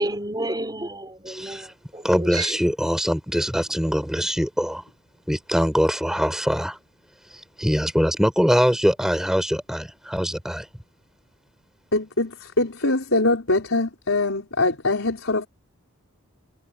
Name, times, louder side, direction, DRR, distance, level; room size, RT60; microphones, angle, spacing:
voice 1, 0.0-2.6, right 1 dB, 20° right, 5.8 m, -30 dB
voice 2, 1.3-1.7 2.0-4.8 5.3-6.8 7.6-10.7, equal, ahead, 5.7 m, -23 dB
voice 3, 11.9-15.5, left 2 dB, 65° left, 5.1 m, -23 dB
head